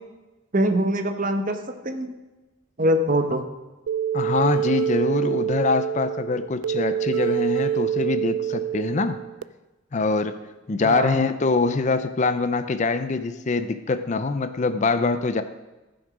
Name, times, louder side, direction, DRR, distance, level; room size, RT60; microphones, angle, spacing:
voice 1, 0.5-2.1 2.8-3.4 10.8-11.2, right 1 dB, 40° right, 6 dB, 0.9 m, -23 dB
sound 1, 3.9-9.4, right 10 dB, 70° right, 0.4 m, -26 dB
voice 2, 4.1-9.2 9.9-10.4 10.7-15.4, left 3 dB, 35° left, 10 dB, 0.5 m, -24 dB
14.5 x 6.2 x 4.9 m, 1.1 s
head